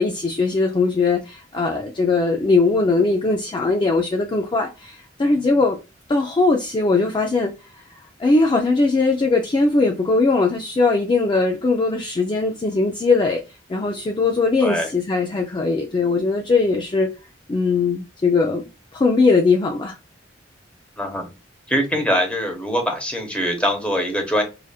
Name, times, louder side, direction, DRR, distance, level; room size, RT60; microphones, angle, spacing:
voice 1, 0.0-5.8 6.1-17.1 17.5-18.7 18.9-19.9, left 3 dB, 25° left, 0.4 m, -20 dB
voice 2, 21.0-21.3 21.7-24.4, equal, 5° left, 0.9 m, -22 dB
4.9 x 2.5 x 2.3 m
head